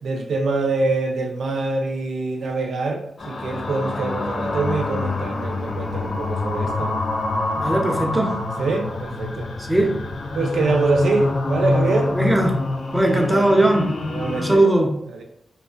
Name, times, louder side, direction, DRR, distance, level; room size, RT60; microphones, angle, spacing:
voice 1, 0.0-6.9 8.6-9.5 10.3-12.2 13.1-13.5 14.0-14.7 15.1-15.2, right 3 dB, 80° right, 3 dB, 0.3 m, -24 dB
sound 1, 3.2-14.6, left 2 dB, 65° left, 0.4 m, -26 dB
voice 2, 7.6-8.4 9.7-10.0 12.2-12.6 12.9-13.9 14.4-14.9, right 1 dB, 10° right, 2 dB, 0.5 m, -18 dB
2.4 x 2.3 x 2.4 m, 0.78 s
cardioid pair, 60°, 0 cm